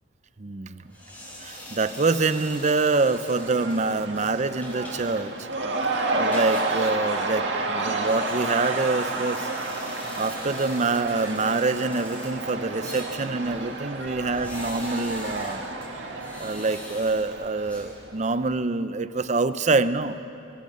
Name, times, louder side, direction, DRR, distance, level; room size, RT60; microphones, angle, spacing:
voice 1, 0.4-0.8 1.4-5.3 6.1-9.5 10.2-15.6 16.4-20.2, right 3 dB, 40° right, 13 dB, 0.6 m, -25 dB
sound 1, 0.9-18.4, left 1 dB, 10° left, 5.3 m, -45 dB
Cheering / Crowd, 1.3-18.1, right 2 dB, 70° right, 2.1 m, -31 dB
27.0 x 18.0 x 6.7 m, 2.7 s
head